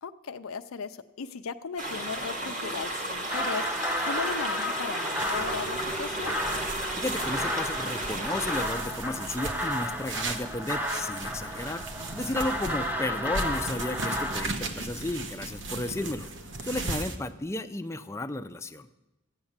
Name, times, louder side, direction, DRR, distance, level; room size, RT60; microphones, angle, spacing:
voice 1, 0.0-6.4 12.6-12.8, left 5 dB, 80° left, 8 dB, 0.5 m, -37 dB
sound 1, 1.8-8.6, right 1 dB, 35° right, 2.0 m, -34 dB
sound 2, 3.3-14.5, equal, 10° right, 0.9 m, -33 dB
sound 3, 5.2-17.2, right 3 dB, 55° right, 1.1 m, -37 dB
voice 2, 6.9-11.8 12.1-16.3 16.6-18.9, left 2 dB, 15° left, 8 dB, 0.5 m, -33 dB
13.5 x 8.9 x 7.2 m, 0.99 s
head